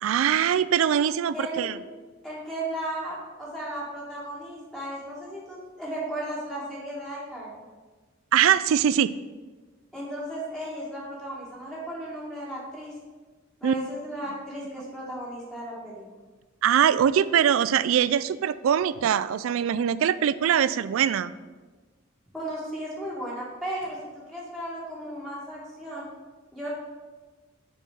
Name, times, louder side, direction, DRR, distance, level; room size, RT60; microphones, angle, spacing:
voice 1, 0.0-1.8 8.3-9.1 13.6-13.8 16.6-21.3, right 9 dB, 80° right, 16 dB, 0.3 m, -22 dB
voice 2, 1.3-1.7 2.2-7.6 9.9-12.9 13.6-16.0 22.3-24.0 24.3-26.1 26.5-26.7, right 1 dB, ahead, -6 dB, 1.9 m, -35 dB
6.9 x 4.5 x 5.9 m, 1.3 s
head